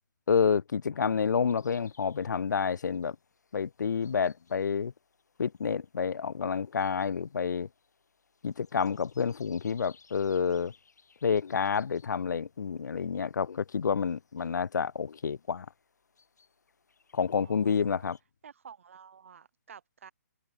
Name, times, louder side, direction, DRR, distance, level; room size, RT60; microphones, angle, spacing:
voice 1, 0.3-3.2 3.5-4.9 5.4-7.7 8.4-10.7 11.2-15.7 17.1-18.2, left 6 dB, 90° left, 0.4 m, -29 dB
sound 1, 1.4-18.2, left 5 dB, 70° left, 7.8 m, -65 dB
voice 2, 17.4-18.1 18.4-20.1, right 7 dB, 45° right, 2.7 m, -51 dB
hypercardioid pair, 170°, 9 cm